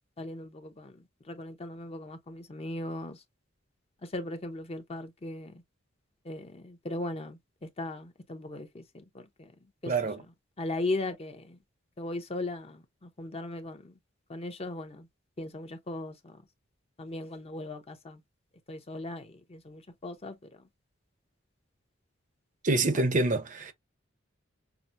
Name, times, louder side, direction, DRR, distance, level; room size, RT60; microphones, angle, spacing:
voice 1, 0.2-3.2 4.0-5.6 6.2-9.9 10.6-11.6 12.0-14.0 14.3-15.1 15.4-16.4 17.0-18.2 18.7-20.7 22.9-23.0, left 2 dB, 30° left, 0.7 m, -38 dB
voice 2, 9.9-10.2 22.6-23.7, right 2 dB, 40° right, 0.6 m, -26 dB
5.8 x 2.0 x 2.5 m
head